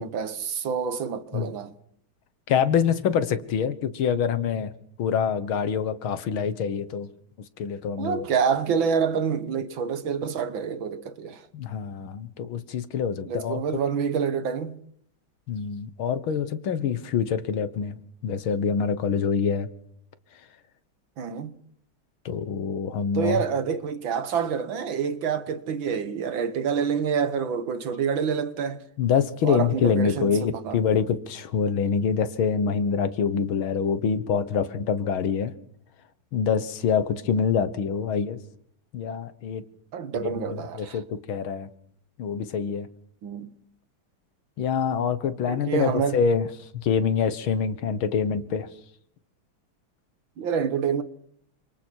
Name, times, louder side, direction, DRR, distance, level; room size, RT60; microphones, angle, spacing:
voice 1, 0.0-1.7 8.0-11.4 13.3-14.8 21.2-21.5 23.1-28.8 29.4-30.8 39.9-41.0 43.2-43.5 45.5-46.2 50.4-51.0, right 6 dB, 70° right, 2.1 m, -27 dB
voice 2, 2.5-4.7 5.0-7.1 7.6-8.3 11.5-13.6 15.5-18.0 18.2-19.7 22.3-23.4 29.0-35.5 36.3-38.4 38.9-39.6 40.2-41.7 42.2-42.9 44.6-48.7, left 6 dB, 75° left, 2.1 m, -25 dB
29.0 x 26.5 x 4.6 m
omnidirectional pair, 2.3 m